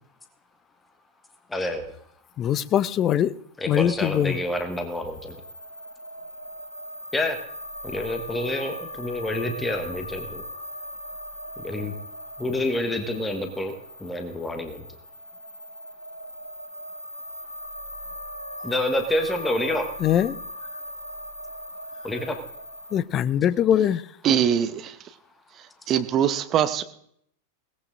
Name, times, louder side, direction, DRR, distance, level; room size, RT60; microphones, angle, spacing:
voice 1, 1.5-1.9 3.6-5.4 7.1-7.4 7.8-10.4 11.6-11.9 12.4-13.7 14.0-14.8 18.6-19.9 22.0-22.4, left 1 dB, 10° left, 6 dB, 1.3 m, -28 dB
voice 2, 2.4-3.3 3.7-4.4 20.0-20.3 22.9-24.0, left 10 dB, 30° left, 19 dB, 0.5 m, -22 dB
sound 1, 4.0-23.0, equal, 85° left, 1.3 m, -39 dB
voice 3, 24.2-25.0 25.9-26.8, right 9 dB, 30° right, 11 dB, 0.8 m, -22 dB
21.5 x 17.5 x 2.6 m, 0.69 s
figure-of-eight pair, 90°, 0 cm